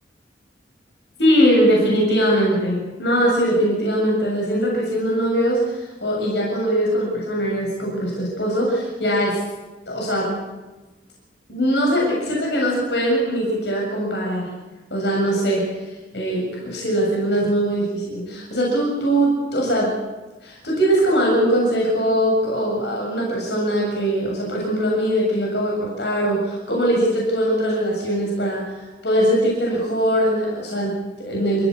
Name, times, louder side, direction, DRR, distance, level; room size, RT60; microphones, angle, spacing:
voice 1, 1.2-9.4 9.9-10.4 11.5-14.5 14.9-19.9 20.4-28.7 29.0-31.7, equal, 75° left, -2 dB, 7.4 m, -21 dB
28.5 x 16.0 x 8.5 m, 1.2 s
head